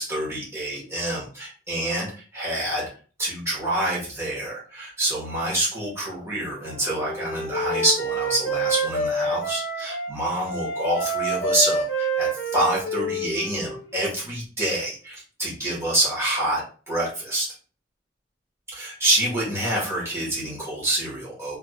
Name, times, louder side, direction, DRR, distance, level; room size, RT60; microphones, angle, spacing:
voice 1, 0.0-2.9 3.2-17.5 18.7-21.6, right 1 dB, 15° right, -6 dB, 1.4 m, -27 dB
Wind instrument woodwind instrument, 6.6-10.1 10.5-14.2, right 2 dB, 65° left, 1.1 m, -28 dB
3.5 x 3.2 x 2.3 m, 0.39 s
head